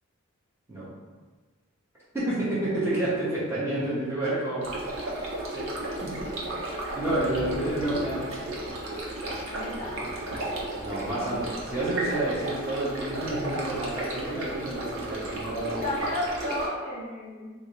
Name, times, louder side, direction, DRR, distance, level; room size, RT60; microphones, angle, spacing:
voice 1, 2.1-4.7 5.5-5.7 6.0-6.2 6.9-8.3 10.8-15.8, right 1 dB, 10° right, -10 dB, 0.7 m, -29 dB
sound 1, 4.6-16.7, right 1 dB, 70° right, 0.7 m, -33 dB
voice 2, 9.4-10.0 14.1-14.4 15.8-17.5, left 1 dB, 30° left, -8 dB, 1.0 m, -33 dB
3.6 x 2.5 x 3.0 m, 1.4 s
head